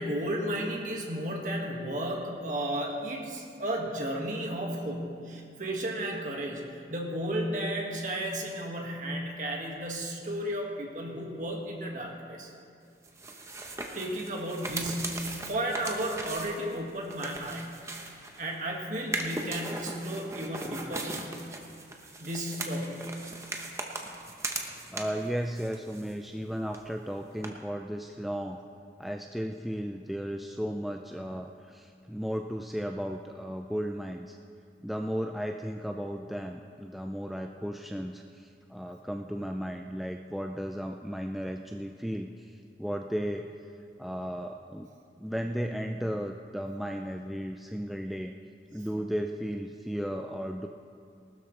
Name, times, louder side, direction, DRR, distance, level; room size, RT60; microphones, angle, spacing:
voice 1, 0.0-6.6 6.9-12.5 13.9-17.6 18.4-21.2 22.2-23.1, right 1 dB, 45° right, -1 dB, 1.8 m, -33 dB
sound 1, 13.0-18.5 19.0-25.3 25.6-26.4 26.7-26.8 27.4-27.5, right 2 dB, 15° right, 0.9 m, -38 dB
voice 2, 24.9-28.6 29.0-34.4 34.8-43.5 44.0-44.9 45.2-48.3 48.7-50.7, equal, ahead, 3 dB, 0.3 m, -35 dB
19.5 x 12.5 x 3.3 m, 2.4 s
head